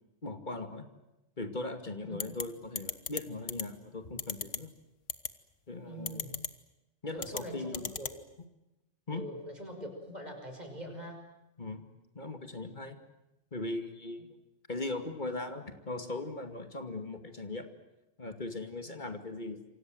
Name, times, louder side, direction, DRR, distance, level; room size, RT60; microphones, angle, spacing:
voice 1, 0.2-0.9 1.4-4.7 5.7-6.2 7.0-7.9 9.1-9.3 11.6-11.8 12.1-13.0 13.5-14.3 14.7-17.7 18.2-19.6, left 2 dB, 40° left, 7 dB, 2.5 m, -39 dB
sound 1, 2.2-2.4 2.8-3.2 3.5-3.6 4.2-4.6 5.1-5.3 6.1-6.5 7.2-7.4 7.7-8.1, left 7 dB, 90° left, 1.7 m, -34 dB
voice 2, 5.8-6.4 7.1-8.1 9.1-11.2 18.8-18.9, equal, 35° right, 4 dB, 6.2 m, -43 dB
28.0 x 25.5 x 7.9 m, 0.95 s
omnidirectional pair, 1.3 m